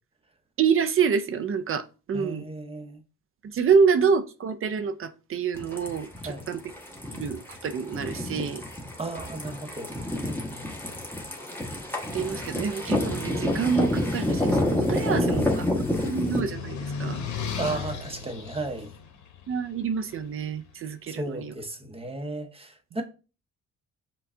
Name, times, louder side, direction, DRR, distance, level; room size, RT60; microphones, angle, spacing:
voice 1, 0.6-2.5 3.4-6.6 7.1-8.6 12.1-17.2 19.5-21.5, right 6 dB, 45° right, 0.5 m, -27 dB
voice 2, 2.1-3.0 6.2-6.4 9.0-9.9 10.2-11.0 15.1-15.5 17.6-18.9 21.1-23.0, right 2 dB, 20° right, 0.9 m, -35 dB
sound 1, 5.5-16.4, left 1 dB, 5° left, 1.2 m, -29 dB
sound 2, 14.4-20.3, left 6 dB, 70° left, 0.9 m, -36 dB
5.8 x 2.3 x 3.6 m
cardioid pair, 90°, 30 cm